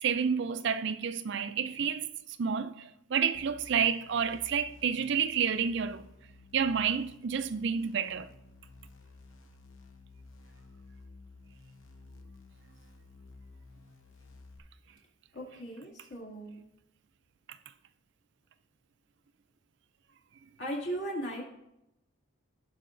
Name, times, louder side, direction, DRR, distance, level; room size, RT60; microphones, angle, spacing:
voice 1, 0.0-2.1 2.4-6.0 6.5-8.3, right 7 dB, 60° right, 0.4 m, -30 dB
sound 1, 3.3-14.6, left 3 dB, 80° left, 0.9 m, -54 dB
voice 2, 15.3-16.6 20.6-21.4, right 1 dB, 60° left, 2.4 m, -37 dB
17.0 x 5.6 x 2.6 m
head